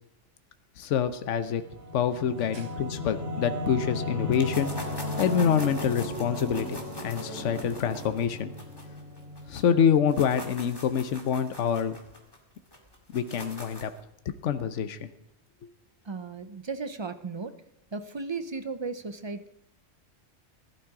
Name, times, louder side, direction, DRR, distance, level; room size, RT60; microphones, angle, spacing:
voice 1, 0.8-1.6 1.9-4.7 5.2-8.5 9.5-12.0 13.1-13.9 14.4-15.1, left 8 dB, 70° left, 10 dB, 1.1 m, -26 dB
Singing / Musical instrument, 1.5-10.7, left 1 dB, 15° right, 3.6 m, -36 dB
sound 1, 4.3-9.6 9.9-14.0, left 1 dB, 20° left, 2.1 m, -43 dB
voice 2, 16.0-17.6 17.9-19.5, right 4 dB, 30° right, 11 dB, 0.5 m, -35 dB
16.5 x 11.5 x 4.9 m, 0.80 s
omnidirectional pair, 1.3 m